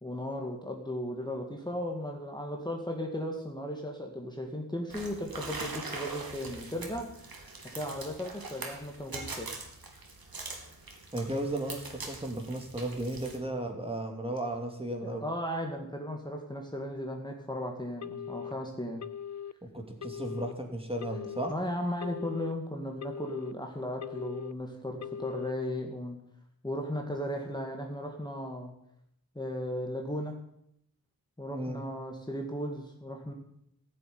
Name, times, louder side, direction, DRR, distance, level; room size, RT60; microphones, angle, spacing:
voice 1, 0.0-7.1 7.7-9.5 15.0-19.0 21.5-26.2 26.6-28.7 29.4-30.4 31.4-33.3, equal, 10° left, 1 dB, 2.0 m, -36 dB
sound 1, 4.9-13.4, right 3 dB, 75° right, 2.8 m, -42 dB
voice 2, 11.1-15.2 19.7-21.5 31.5-31.8, right 1 dB, 15° right, 2 dB, 2.7 m, -35 dB
Telephone, 18.0-18.5 19.0-19.5 20.0-20.5 21.0-21.5 22.0-22.5 23.0-23.5 24.0-24.5 25.0-25.5, left 9 dB, 50° left, 0.5 m, -40 dB
14.5 x 7.7 x 9.6 m, 0.76 s
wide cardioid pair, 90°, 36 cm